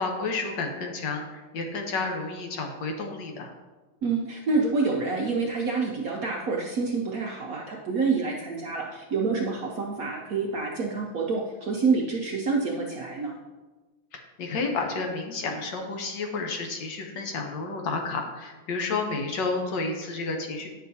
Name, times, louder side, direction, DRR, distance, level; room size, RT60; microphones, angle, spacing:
voice 1, 0.0-3.5 14.1-20.7, left 3 dB, 65° left, 2 dB, 1.4 m, -31 dB
voice 2, 4.0-13.4, right 4 dB, 65° right, -1 dB, 0.9 m, -27 dB
9.0 x 6.2 x 2.7 m, 1.2 s
omnidirectional pair, 2.2 m